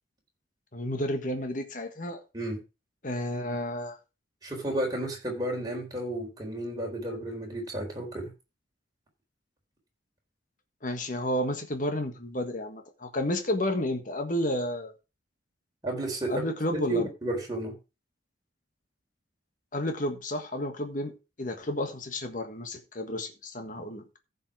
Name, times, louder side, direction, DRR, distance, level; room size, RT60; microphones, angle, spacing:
voice 1, 0.7-2.2 3.0-4.0 10.8-14.9 16.3-17.1 19.7-24.0, left 1 dB, 40° left, 1.5 m, -31 dB
voice 2, 4.4-8.3 15.8-17.8, right 1 dB, 20° right, 3.9 m, -32 dB
14.5 x 5.4 x 4.6 m
head